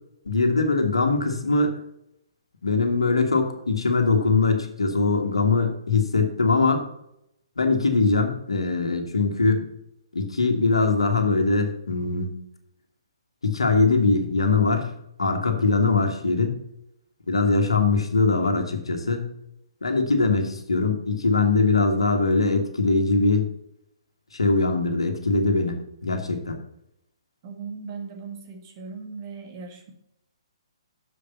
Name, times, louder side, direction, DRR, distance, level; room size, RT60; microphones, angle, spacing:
voice 1, 0.3-1.7 2.6-6.8 7.6-9.7 10.1-12.3 13.4-14.9 15.2-16.6 17.3-19.3 19.8-23.5 24.3-26.6, left 3 dB, 75° left, 4 dB, 1.6 m, -22 dB
voice 2, 27.4-29.9, right 5 dB, 35° right, 3 dB, 1.9 m, -38 dB
6.9 x 6.7 x 5.6 m, 0.78 s
figure-of-eight pair, 130°, 3 cm